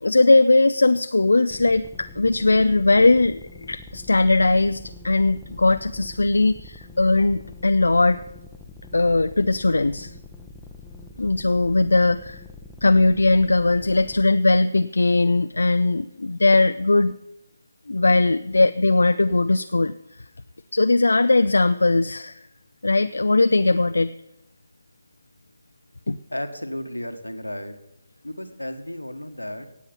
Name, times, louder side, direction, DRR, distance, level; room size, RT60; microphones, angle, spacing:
voice 1, 0.0-8.2 8.9-10.1 11.2-12.4 12.8-17.1 17.9-19.9 20.7-22.4 22.8-24.1 26.1-26.2, left 2 dB, 65° left, 11 dB, 0.5 m, -19 dB
sound 1, 1.5-14.2, left 2 dB, 5° left, 1.1 m, -44 dB
voice 2, 26.3-27.8 28.2-29.7, left 1 dB, 85° left, 7 dB, 1.6 m, -33 dB
17.5 x 8.0 x 5.5 m, 0.88 s
figure-of-eight pair, 145°, 0 cm